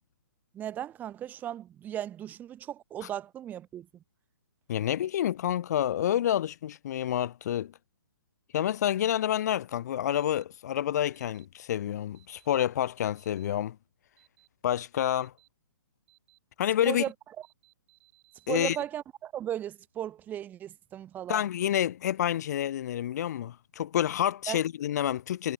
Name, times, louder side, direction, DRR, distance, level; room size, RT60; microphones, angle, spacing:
voice 1, 0.5-3.9 16.9-17.1 18.5-21.4 24.5-24.6, right 11 dB, 15° right, 0.7 m, -36 dB
voice 2, 4.7-7.7 8.5-13.8 14.6-15.3 16.6-17.0 18.5-18.8 21.3-25.5, left 11 dB, 50° left, 0.6 m, -28 dB
sound 1, 9.1-9.4 10.1-10.4 11.1-11.5 12.1-12.5 13.2-13.5 14.2-14.5 15.2-15.5 16.1-16.4 16.8-17.1 17.4-18.8, right 33 dB, 35° right, 5.7 m, -63 dB
hypercardioid pair, 135°, 11 cm